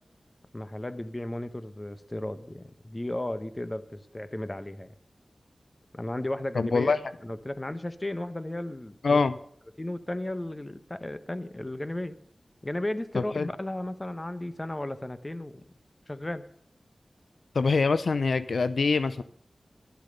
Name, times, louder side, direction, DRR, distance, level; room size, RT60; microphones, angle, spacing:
voice 1, 0.5-4.9 5.9-6.9 7.2-9.2 9.8-12.2 12.6-15.6 16.1-16.4, left 1 dB, 25° left, 12 dB, 1.1 m, -34 dB
voice 2, 6.5-7.0 9.0-9.3 13.1-13.5 17.5-19.2, left 4 dB, 85° left, 13 dB, 0.6 m, -24 dB
12.0 x 11.5 x 6.7 m, 0.64 s
wide cardioid pair, 55°, 0 cm